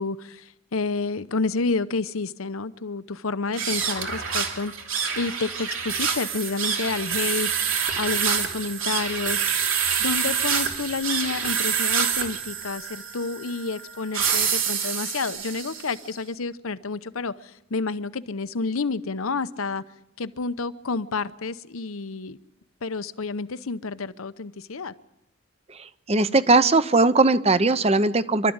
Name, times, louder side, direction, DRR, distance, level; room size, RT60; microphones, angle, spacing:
voice 1, 0.0-4.7 5.2-9.4 10.0-19.8 20.2-22.4 22.8-24.9, left 4 dB, 85° left, 0.8 m, -29 dB
sound 1, 3.5-16.0, right 7 dB, 75° right, 2.9 m, -27 dB
voice 2, 25.7-28.5, right 3 dB, 30° right, 0.7 m, -19 dB
26.5 x 13.0 x 8.8 m
head